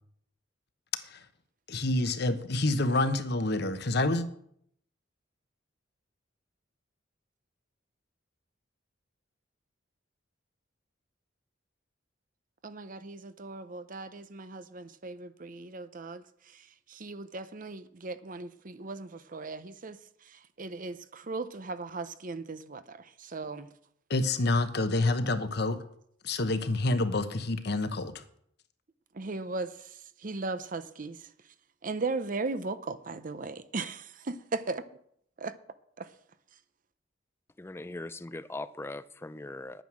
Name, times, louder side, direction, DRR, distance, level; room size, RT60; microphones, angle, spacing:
voice 1, 1.7-4.2 24.1-25.8 26.2-28.2, left 2 dB, 60° left, 1.1 m, -28 dB
voice 2, 12.6-16.2 16.9-20.0 20.3-23.7 29.1-29.7 30.2-31.2 31.8-34.8 35.4-35.5 36.0-36.1, right 3 dB, 45° right, 0.7 m, -37 dB
voice 3, 37.6-39.8, left 2 dB, 15° left, 0.4 m, -40 dB
10.5 x 9.1 x 6.2 m
head